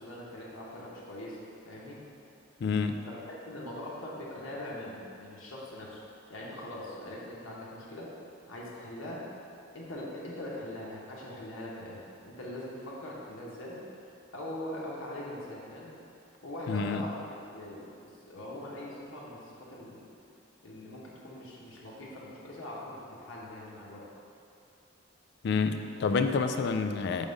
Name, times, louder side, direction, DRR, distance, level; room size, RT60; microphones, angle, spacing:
voice 1, 0.0-1.4 1.6-2.0 3.0-6.0 6.3-8.1 8.5-9.2 9.7-13.8 14.3-15.9 16.4-17.9 18.3-20.1 20.6-24.0, left 1 dB, 80° left, -5 dB, 1.0 m, -42 dB
voice 2, 2.6-3.0 16.7-17.0 25.4-27.3, left 4 dB, 55° left, 7 dB, 0.3 m, -28 dB
5.1 x 3.5 x 5.2 m, 2.6 s
head